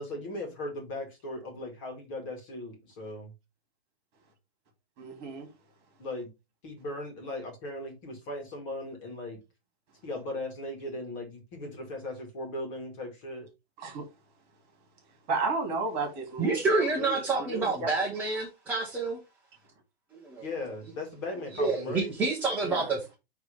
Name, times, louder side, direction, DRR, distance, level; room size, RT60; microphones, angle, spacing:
voice 1, 0.0-3.3 6.0-6.3 6.6-9.4 10.0-13.5 20.4-22.1, left 2 dB, 30° left, 2.1 m, -38 dB
voice 2, 5.0-5.5 13.8-14.0 15.3-16.5 17.0-17.9 22.7-22.9, right 3 dB, 30° right, 2.9 m, -32 dB
voice 3, 16.4-19.2 20.1-20.5 21.5-23.1, right 3 dB, 5° right, 1.0 m, -28 dB
9.6 x 3.3 x 3.5 m
hypercardioid pair, 175°, 32 cm